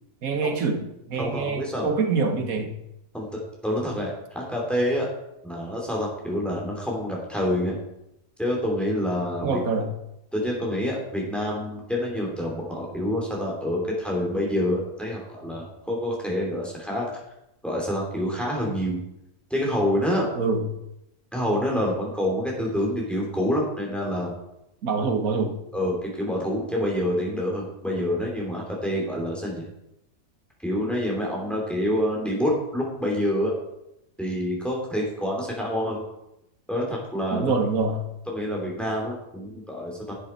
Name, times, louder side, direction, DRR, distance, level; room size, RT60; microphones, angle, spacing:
voice 1, 0.2-2.7 9.4-9.9 20.3-20.7 24.8-25.6 37.3-38.0, right 4 dB, 60° right, 5 dB, 1.6 m, -25 dB
voice 2, 1.2-1.9 3.1-5.1 5.4-7.8 8.4-9.6 10.3-17.1 17.6-19.0 19.5-20.3 21.3-24.3 25.7-29.7 30.6-33.5 34.2-36.0 36.7-37.4 38.3-40.1, equal, ahead, -2 dB, 2.8 m, -27 dB
11.0 x 7.7 x 4.5 m, 0.85 s
omnidirectional pair, 1.7 m